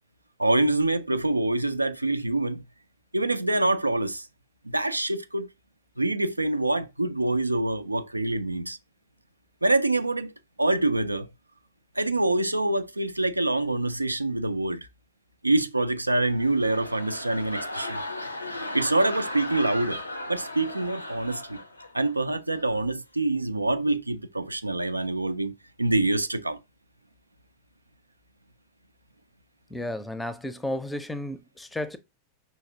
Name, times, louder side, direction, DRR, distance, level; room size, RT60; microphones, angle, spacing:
voice 1, 0.4-2.6 3.1-4.3 4.6-5.5 6.0-8.8 9.6-10.3 10.6-11.3 12.0-14.9 15.4-18.0 18.7-20.0 20.3-21.6 21.9-26.6, right 2 dB, 85° right, 0.4 m, -25 dB
sound 1, 16.2-22.1 22.5-22.8, left 1 dB, 85° left, 0.6 m, -36 dB
voice 2, 29.7-32.0, left 1 dB, 5° left, 0.6 m, -33 dB
5.6 x 3.2 x 2.7 m
figure-of-eight pair, 90°, 0 cm